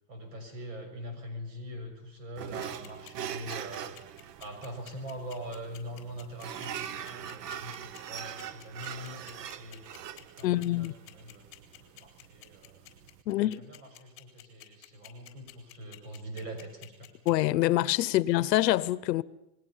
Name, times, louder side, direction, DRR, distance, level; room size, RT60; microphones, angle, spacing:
voice 1, 0.1-3.9 4.4-9.8 10.4-12.9 13.2-17.1, equal, 50° right, 6.2 m, -43 dB
sound 1, 2.4-13.2, right 9 dB, 70° right, 1.2 m, -42 dB
sound 2, 2.6-17.3, left 15 dB, 30° left, 3.9 m, -50 dB
voice 2, 10.4-10.9 13.3-13.6 17.3-19.2, left 15 dB, 80° left, 0.9 m, -25 dB
28.0 x 21.0 x 5.7 m
supercardioid pair, 175°, 50 cm